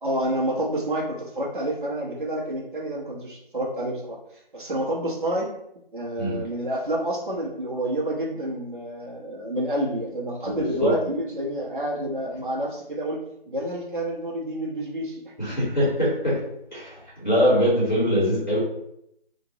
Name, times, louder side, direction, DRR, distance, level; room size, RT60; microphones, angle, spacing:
voice 1, 0.0-4.2 4.5-5.5 5.9-13.2 13.5-15.6, right 1 dB, 55° right, -3 dB, 1.0 m, -28 dB
voice 2, 10.4-10.9 15.4-16.3 16.7-18.6, equal, 50° left, -8 dB, 1.5 m, -23 dB
3.0 x 2.5 x 2.7 m, 0.77 s
figure-of-eight pair, 170°, 30 cm